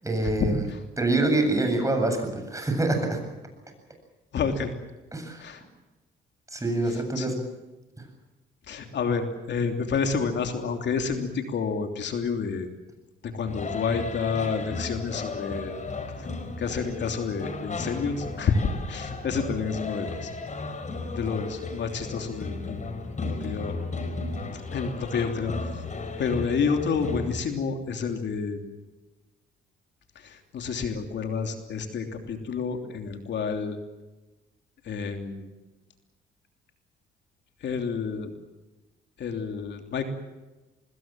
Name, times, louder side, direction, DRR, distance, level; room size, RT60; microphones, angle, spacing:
voice 1, 0.0-0.6 1.0-3.2 5.1-5.4 6.5-7.5, right 2 dB, 15° right, 5 dB, 7.9 m, -25 dB
voice 2, 4.3-4.7 5.4-5.6 6.9-7.3 8.7-12.7 13.3-15.8 16.2-16.3 16.6-18.6 18.9-20.3 21.1-22.9 23.2-23.8 24.5-25.8 26.2-28.6 30.1-33.8 34.8-35.5 37.6-38.3 39.2-40.0, left 5 dB, 65° left, 5 dB, 3.1 m, -29 dB
sound 1, 13.5-27.4, left 3 dB, 40° left, 4.8 m, -35 dB
24.5 x 21.0 x 7.6 m, 1.1 s
cardioid pair, 90°, 20 cm